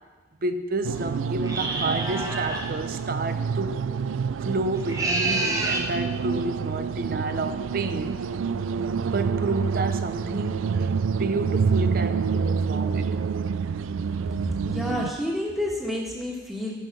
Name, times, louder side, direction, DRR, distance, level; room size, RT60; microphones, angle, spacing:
voice 1, 0.4-3.8 4.4-8.2 9.1-13.1, right 2 dB, 45° right, 9 dB, 0.7 m, -30 dB
sound 1, 0.8-15.1, right 6 dB, 85° right, 0.3 m, -28 dB
sound 2, 1.4-2.7 4.7-5.9, right 2 dB, 15° right, 1.0 m, -28 dB
voice 2, 14.4-16.7, left 1 dB, ahead, -3 dB, 1.7 m, -29 dB
13.0 x 5.7 x 6.0 m, 1.3 s
head